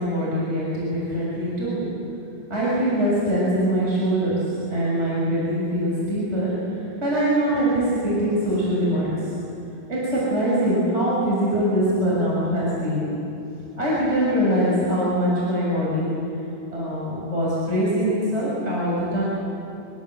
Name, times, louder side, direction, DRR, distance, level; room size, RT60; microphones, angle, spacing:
voice 1, 0.0-1.8 2.5-4.4 4.7-9.2 9.9-13.1 13.8-16.1 16.7-19.2, equal, 20° right, -7 dB, 6.9 m, -23 dB
25.5 x 25.0 x 7.9 m, 2.7 s
omnidirectional pair, 3.7 m